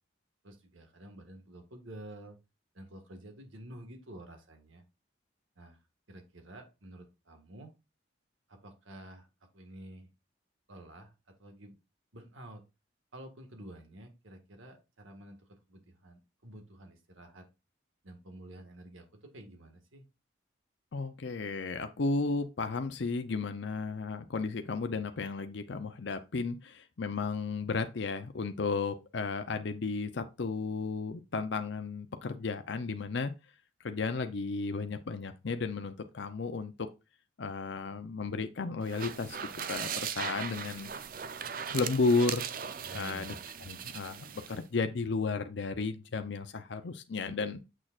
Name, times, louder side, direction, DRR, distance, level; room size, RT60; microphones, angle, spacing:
voice 1, 0.4-2.4 2.7-4.8 5.5-5.8 6.1-7.7 8.5-9.3 9.5-10.1 10.7-11.1 11.4-11.8 12.1-12.6 13.1-17.4 18.0-20.0 42.8-43.4, right 1 dB, 90° right, 1.7 m, -50 dB
voice 2, 20.9-33.3 33.8-36.9 37.4-40.9 41.7-42.5 42.9-43.3 43.7-47.6, left 4 dB, 65° left, 0.6 m, -33 dB
sound 1, 38.8-44.6, right 8 dB, 45° right, 0.5 m, -39 dB
7.3 x 6.4 x 2.4 m
head